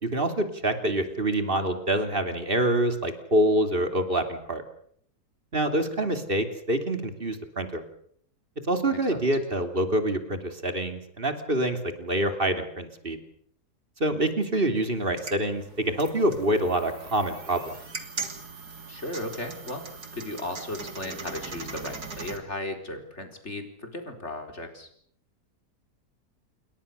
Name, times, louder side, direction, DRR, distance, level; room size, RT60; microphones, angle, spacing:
voice 1, 0.0-4.6 5.5-7.8 8.7-13.2 14.0-17.7, right 1 dB, 35° right, 7 dB, 3.2 m, -26 dB
voice 2, 8.9-9.2 18.9-19.8 20.1-24.9, left 1 dB, 40° left, 5 dB, 4.7 m, -36 dB
sound 1, 15.0-22.4, right 4 dB, 70° right, 3.5 m, -40 dB
28.5 x 22.5 x 6.8 m, 0.65 s
omnidirectional pair, 1.7 m